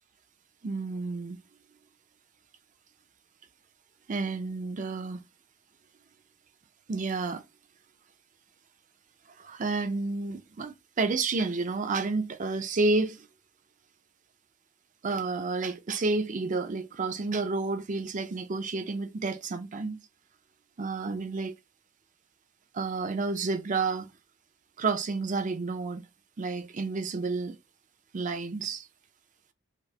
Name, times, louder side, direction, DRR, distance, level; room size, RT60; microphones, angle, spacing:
voice 1, 0.6-1.4 4.1-5.2 6.9-7.4 9.4-13.3 15.0-20.0 20.8-21.5 22.7-24.1 24.8-26.0 26.4-27.6 28.1-28.9, right 3 dB, 40° right, 0.5 m, -30 dB
5.0 x 2.0 x 2.8 m
head